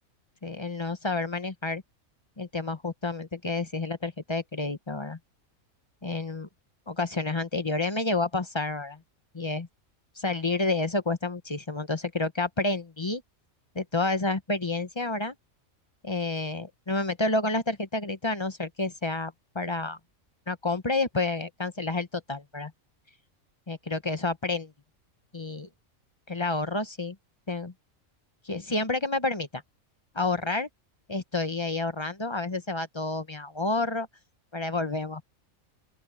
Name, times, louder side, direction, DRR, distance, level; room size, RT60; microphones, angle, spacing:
voice 1, 0.4-1.8 2.4-5.2 6.0-6.5 6.9-9.0 9.3-9.7 10.2-13.2 13.7-15.3 16.0-20.0 20.5-22.7 23.7-24.7 25.3-25.7 26.3-27.2 27.5-27.7 28.4-29.6 30.1-30.7 31.1-34.1 34.5-35.2, left 3 dB, 25° left, 0.8 m, -29 dB
open air
omnidirectional pair, 1.4 m